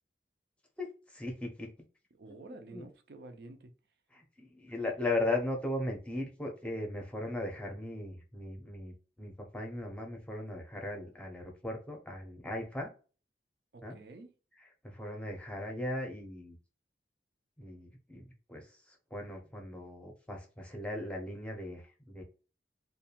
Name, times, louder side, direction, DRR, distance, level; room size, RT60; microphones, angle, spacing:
voice 1, 0.8-1.7 2.3-2.9 4.1-12.9 13.8-14.0 14.8-16.6 17.6-22.2, left 2 dB, 5° left, 0.6 m, -38 dB
voice 2, 2.1-3.7 13.7-14.3, right 2 dB, 65° right, 0.5 m, -50 dB
2.6 x 2.2 x 2.8 m
head